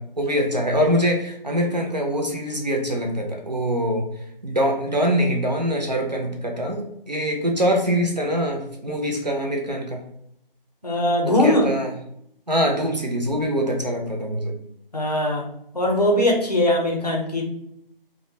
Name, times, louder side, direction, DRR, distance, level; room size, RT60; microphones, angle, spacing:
voice 1, 0.0-4.1 4.4-10.0 11.2-11.9 12.5-14.5, equal, 50° right, 1 dB, 0.5 m, -24 dB
voice 2, 10.8-11.6 14.9-15.4 15.7-17.4, left 1 dB, 45° left, 0 dB, 0.6 m, -20 dB
2.5 x 2.1 x 2.6 m, 0.73 s
figure-of-eight pair, 160°, 29 cm